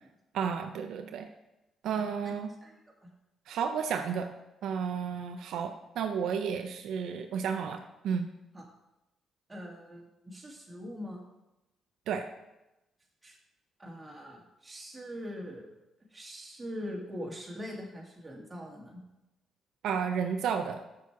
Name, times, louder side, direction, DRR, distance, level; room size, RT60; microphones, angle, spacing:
voice 1, 0.3-1.3 1.8-2.5 3.5-4.3 4.6-8.3 12.1-12.3 19.8-20.8, right 7 dB, 80° right, 6 dB, 0.5 m, -32 dB
voice 2, 9.5-11.2 13.2-13.4 13.8-15.7 16.1-19.0, equal, 20° right, -2 dB, 2.2 m, -42 dB
6.9 x 6.3 x 4.7 m, 0.95 s
cardioid pair, 90°, 0 cm